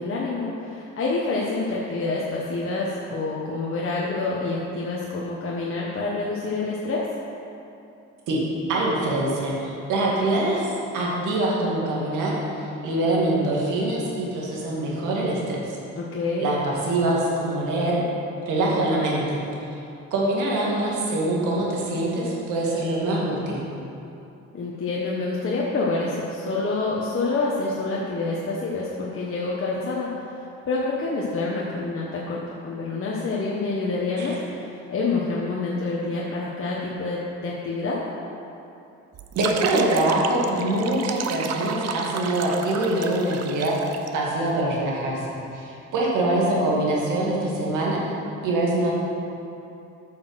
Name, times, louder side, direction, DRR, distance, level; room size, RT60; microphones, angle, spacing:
voice 1, 0.0-7.0 16.0-16.5 24.5-30.1 30.7-38.0, left 3 dB, 45° left, -4 dB, 1.2 m, -27 dB
voice 2, 8.7-12.4 12.8-15.6 16.4-18.0 18.5-19.4 20.1-23.6 34.2-34.3 39.3-43.8 44.1-45.2 45.5-48.0 48.4-48.9, right 1 dB, 85° right, -4 dB, 2.2 m, -24 dB
sound 1, 39.1-44.1, right 6 dB, 55° right, 0.7 m, -32 dB
8.4 x 6.3 x 6.4 m, 2.8 s
cardioid pair, 90°, 30 cm